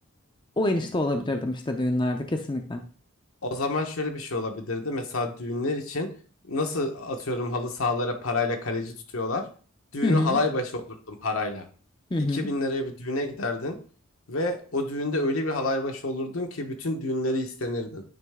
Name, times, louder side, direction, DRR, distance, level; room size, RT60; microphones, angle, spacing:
voice 1, 0.6-2.8 10.0-10.4 12.1-12.5, left 2 dB, 20° left, 5 dB, 0.5 m, -26 dB
voice 2, 3.4-6.1 6.5-9.4 9.9-10.8 11.1-11.6 12.3-13.8 14.3-18.0, left 2 dB, 80° left, 4 dB, 1.1 m, -28 dB
9.2 x 3.2 x 3.5 m, 0.41 s
head